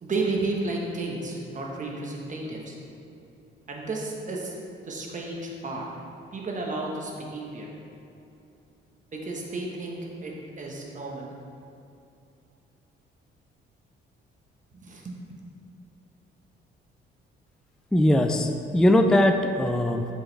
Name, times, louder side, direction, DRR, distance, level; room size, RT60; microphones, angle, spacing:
voice 1, 0.0-2.7 3.7-4.5 4.8-5.8 6.3-7.7 9.1-11.3 14.8-15.2, right 3 dB, 40° right, -1 dB, 1.2 m, -32 dB
voice 2, 17.9-20.1, left 1 dB, 5° left, 5 dB, 0.3 m, -20 dB
7.6 x 5.0 x 3.3 m, 2.7 s
cardioid pair, 90°, 20 cm